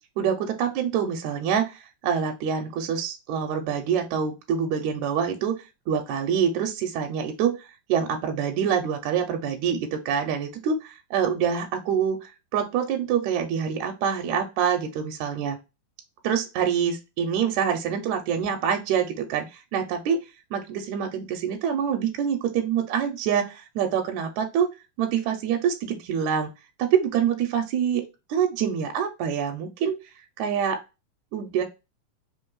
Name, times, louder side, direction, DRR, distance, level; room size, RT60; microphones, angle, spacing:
voice 1, 0.2-5.5 5.9-7.6 7.9-15.6 16.2-20.2 20.5-24.7 25.0-26.5 26.8-28.0 28.3-30.0 30.4-30.8 31.3-31.6, right 8 dB, 80° right, 4 dB, 1.8 m, -26 dB
4.4 x 3.2 x 2.3 m, 0.26 s
omnidirectional pair, 3.6 m